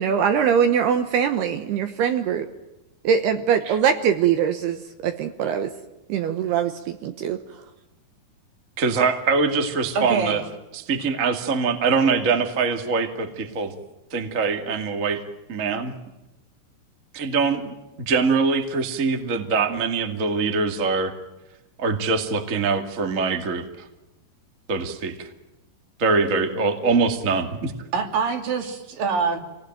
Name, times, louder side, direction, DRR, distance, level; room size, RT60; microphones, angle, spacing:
voice 1, 0.0-2.5 3.0-5.7 6.1-7.4, right 8 dB, 70° right, 7 dB, 2.9 m, -22 dB
voice 2, 8.8-10.4 10.9-13.7 14.1-15.2 15.5-15.9 17.1-21.1 21.8-23.6 24.7-25.3 26.0-27.7, right 4 dB, 30° right, 5 dB, 1.5 m, -23 dB
voice 3, 9.9-10.4 27.9-29.4, right 5 dB, 55° right, 6 dB, 3.9 m, -25 dB
28.0 x 19.0 x 9.2 m, 0.98 s
omnidirectional pair, 5.2 m